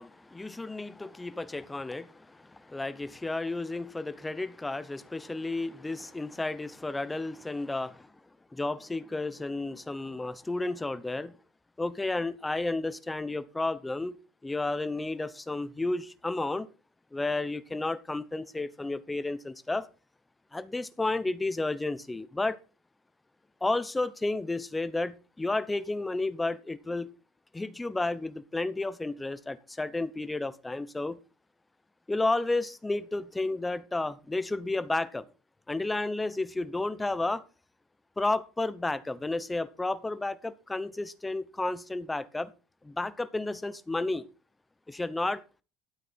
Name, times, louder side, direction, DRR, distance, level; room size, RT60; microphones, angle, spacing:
voice 1, 0.0-8.1 8.5-11.4 11.8-14.2 14.4-16.7 17.1-19.9 20.5-22.6 23.6-27.1 27.5-31.2 32.1-35.3 35.7-37.4 38.2-42.5 42.8-44.2 44.9-45.4, left 2 dB, 10° left, 0.8 m, -32 dB
12.5 x 8.8 x 4.4 m
cardioid pair, 150°, 0 cm